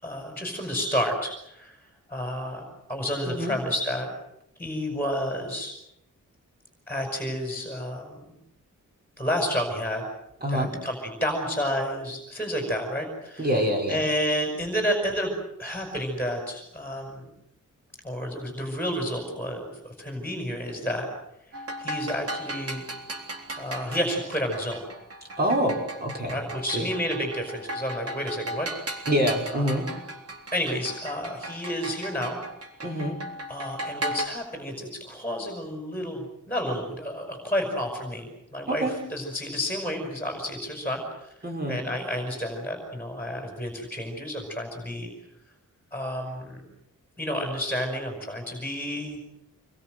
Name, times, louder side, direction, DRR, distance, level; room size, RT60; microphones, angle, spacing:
voice 1, 0.0-4.1 4.6-5.7 6.9-8.4 9.2-10.0 10.5-13.5 13.9-15.3 15.6-17.3 18.0-21.1 21.8-22.8 23.6-24.8 26.3-28.7 29.5-30.0 30.5-32.4 33.5-41.3 41.7-45.1 45.9-46.7 47.2-49.2, equal, 5° left, 2 dB, 5.6 m, -30 dB
voice 2, 3.3-3.6 10.4-10.7 13.4-14.0 25.4-26.4 26.7-26.9 29.1-29.9 32.8-33.2 38.7-38.9 41.4-41.8, equal, 30° right, 1 dB, 5.4 m, -26 dB
sound 1, 21.5-34.3, right 1 dB, 50° right, 3.8 m, -36 dB
27.0 x 22.0 x 7.9 m, 0.83 s
wide cardioid pair, 160°, 31 cm